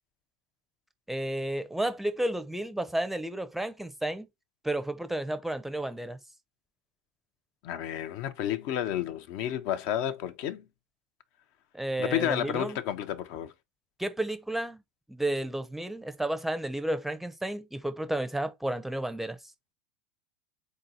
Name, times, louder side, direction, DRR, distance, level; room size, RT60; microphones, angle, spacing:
voice 1, 1.1-4.3 4.6-6.2 11.7-12.8 14.0-14.8 15.1-19.4, right 1 dB, 5° right, 0.5 m, -32 dB
voice 2, 7.6-10.6 12.0-13.5, left 11 dB, 55° left, 0.5 m, -31 dB
3.9 x 2.6 x 3.9 m
hypercardioid pair, 90°, 5 cm